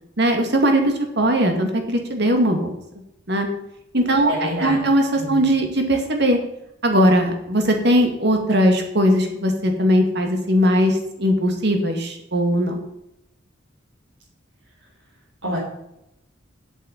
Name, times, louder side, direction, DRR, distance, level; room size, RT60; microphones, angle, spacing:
voice 1, 0.2-2.7 3.3-3.5 3.9-6.4 6.8-12.8, equal, 60° right, 4 dB, 2.4 m, -19 dB
voice 2, 4.2-4.8 5.2-5.4 15.4-15.6, equal, 80° right, -7 dB, 4.4 m, -27 dB
8.0 x 8.0 x 8.9 m, 0.83 s
head